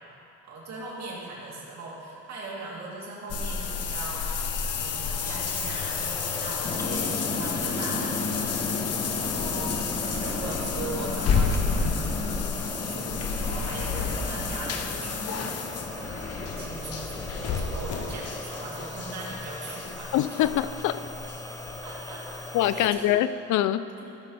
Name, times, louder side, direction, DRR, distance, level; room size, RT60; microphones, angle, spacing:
voice 1, 0.4-12.2 12.6-15.4 16.0-20.2 21.8-22.4 22.7-23.1 24.0-24.1, right 2 dB, 65° right, -4 dB, 2.6 m, -39 dB
sound 1, 3.3-22.0 22.3-22.4 22.9-23.0, left 5 dB, 55° left, 0.9 m, -31 dB
sound 2, 4.8-22.9, left 2 dB, 10° left, 0.7 m, -40 dB
sound 3, 6.6-18.9, left 2 dB, 30° left, 1.5 m, -36 dB
voice 2, 20.1-21.0 22.5-23.9, left 12 dB, 75° left, 13 dB, 0.5 m, -24 dB
16.0 x 6.4 x 4.1 m, 2.8 s
cardioid pair, 90°, 30 cm